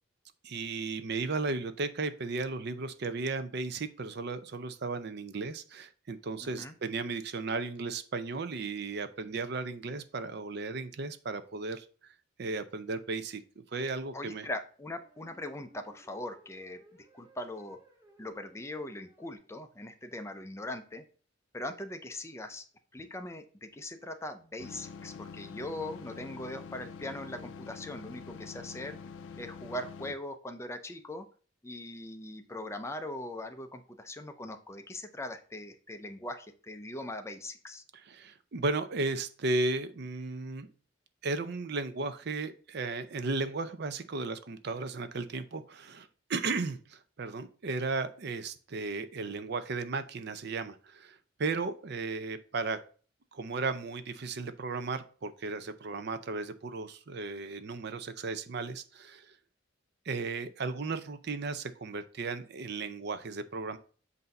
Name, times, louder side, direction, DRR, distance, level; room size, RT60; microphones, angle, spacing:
voice 1, 0.4-12.1 12.4-14.5 38.0-40.7 41.2-52.8 53.3-59.4 60.0-63.8, right 3 dB, 55° right, 11 dB, 0.5 m, -35 dB
voice 2, 6.4-6.7 14.1-17.8 18.2-21.0 21.5-22.6 22.9-29.0 29.4-31.3 31.6-37.8, left 1 dB, 15° left, 7 dB, 0.5 m, -41 dB
sound 1, 12.8-12.9 15.0-19.4, right 1 dB, 20° right, 1.1 m, -60 dB
sound 2, 24.6-30.2, left 5 dB, 65° left, 0.4 m, -46 dB
7.9 x 2.7 x 5.2 m, 0.40 s
head